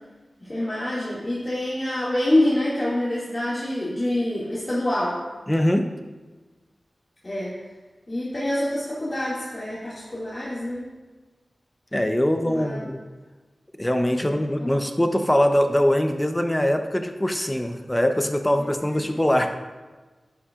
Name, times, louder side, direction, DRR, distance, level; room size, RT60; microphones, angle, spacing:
voice 1, 0.4-5.2 7.2-7.6 8.1-10.9 12.5-12.8 14.2-14.8 18.8-19.0, left 1 dB, 35° left, -9 dB, 2.2 m, -26 dB
voice 2, 5.5-5.8 11.9-13.0 13.8-19.5, equal, 15° left, 6 dB, 0.7 m, -22 dB
11.0 x 5.5 x 2.5 m, 1.3 s
cardioid pair, 40°, 0 cm